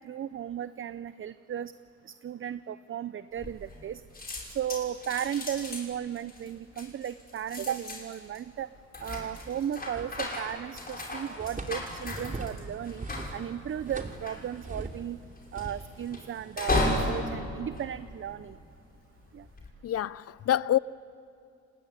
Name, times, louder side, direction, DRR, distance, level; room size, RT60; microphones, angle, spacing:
voice 1, 0.0-1.7 2.0-4.0 4.5-8.7 9.0-13.1 13.3-15.2 15.5-18.6 19.3-19.5, right 9 dB, 45° right, 0.6 m, -35 dB
sound 1, 3.4-3.9 4.1-18.7 19.3-19.7, left 2 dB, 30° left, 6.1 m, -35 dB
sound 2, 9.9-10.6 10.9-15.2 15.5-17.2, right 3 dB, 25° right, 3.1 m, -42 dB
voice 2, 19.8-20.8, left 12 dB, 50° left, 0.6 m, -26 dB
29.5 x 20.0 x 9.7 m
cardioid pair, 90°, 30 cm